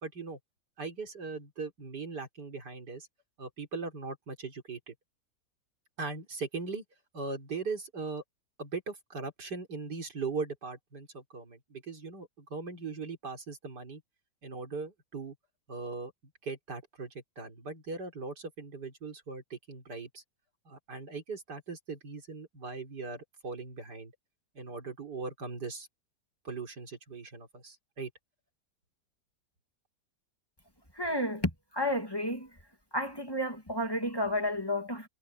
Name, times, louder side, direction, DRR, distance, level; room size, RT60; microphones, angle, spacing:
voice 1, 0.0-0.4 0.8-3.1 3.4-4.9 6.0-6.8 7.1-8.2 8.6-14.0 14.4-15.3 15.7-16.1 16.4-20.2 20.7-24.1 24.5-25.9 26.4-28.1, right 4 dB, 85° right, 4.2 m, -39 dB
voice 2, 30.9-32.6 32.9-35.1, left 1 dB, 15° left, 2.2 m, -31 dB
omnidirectional pair, 1.7 m